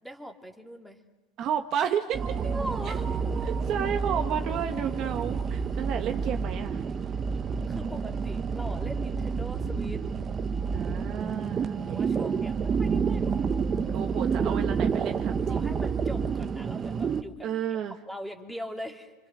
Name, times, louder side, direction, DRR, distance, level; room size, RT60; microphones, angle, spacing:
voice 1, 0.0-1.0 2.4-3.1 7.6-10.0 11.9-13.3 14.5-14.7 15.4-17.5 18.0-19.1, equal, ahead, 3 dB, 2.6 m, -41 dB
voice 2, 1.4-2.2 3.4-6.8 10.7-12.1 13.9-15.6 17.4-17.9, right 8 dB, 40° right, 5 dB, 1.5 m, -32 dB
sound 1, 2.1-17.2, right 5 dB, 25° right, 1.2 m, -29 dB
28.5 x 25.5 x 6.4 m, 1.2 s
supercardioid pair, 140°, 0 cm